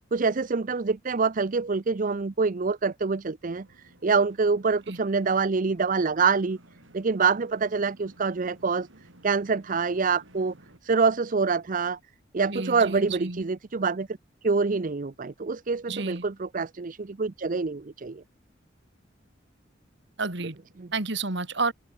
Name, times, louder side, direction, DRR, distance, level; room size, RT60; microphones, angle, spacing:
voice 1, 0.1-3.7 4.0-6.6 6.9-8.9 9.2-10.5 10.8-12.0 12.3-14.1 14.4-18.2 20.8-20.9, right 4 dB, 45° right, 0.6 m, -26 dB
sound 1, 3.5-10.8, right 1 dB, 80° right, 4.8 m, -56 dB
voice 2, 12.5-13.4 15.9-16.2 20.2-20.6 20.9-21.7, right 3 dB, 65° right, 2.6 m, -30 dB
open air
head